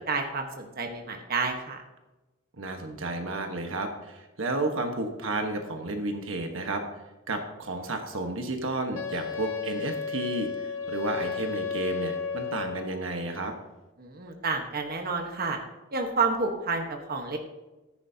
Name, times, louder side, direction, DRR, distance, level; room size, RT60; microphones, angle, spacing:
voice 1, 0.1-1.8 14.0-15.6 15.9-17.4, right 4 dB, 45° right, 3 dB, 1.2 m, -29 dB
voice 2, 2.6-6.8 7.3-13.5, right 2 dB, 70° right, 4 dB, 1.3 m, -32 dB
Wind instrument woodwind instrument, 8.9-13.1, left 6 dB, 70° left, 0.9 m, -33 dB
14.5 x 10.5 x 2.8 m, 1.1 s
head